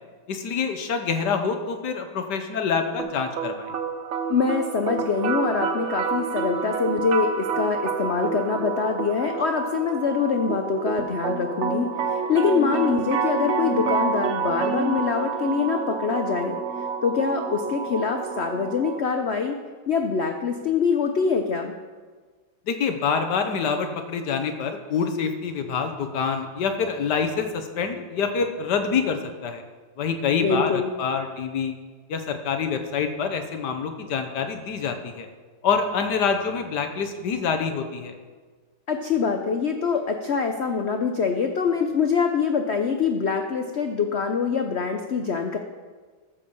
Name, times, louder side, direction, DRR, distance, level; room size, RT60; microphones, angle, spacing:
voice 1, 0.3-3.7 22.7-29.6 30.0-31.7 32.1-35.3 35.6-38.1, left 6 dB, 65° left, 6 dB, 1.5 m, -26 dB
sound 1, 3.0-19.0, right 5 dB, 65° right, 0.7 m, -28 dB
voice 2, 4.3-19.6 19.9-21.8 30.4-30.9 38.9-45.6, left 5 dB, 90° left, 5 dB, 0.5 m, -24 dB
14.0 x 5.5 x 7.1 m, 1.5 s
omnidirectional pair, 2.1 m